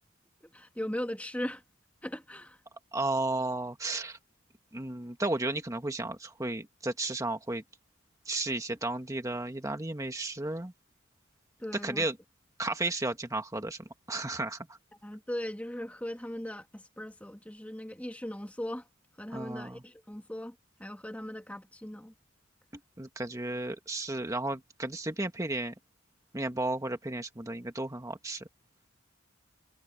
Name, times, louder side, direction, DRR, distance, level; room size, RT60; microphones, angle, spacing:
voice 1, 0.4-1.6 2.0-2.6 11.6-12.1 15.0-18.9 19.2-22.1, left 1 dB, 5° left, 2.4 m, -39 dB
voice 2, 2.9-4.2 4.7-7.6 8.2-10.7 11.8-12.1 12.6-13.8 14.1-14.6 19.3-19.8 23.0-25.7 26.3-28.5, right 2 dB, 15° right, 1.4 m, -33 dB
head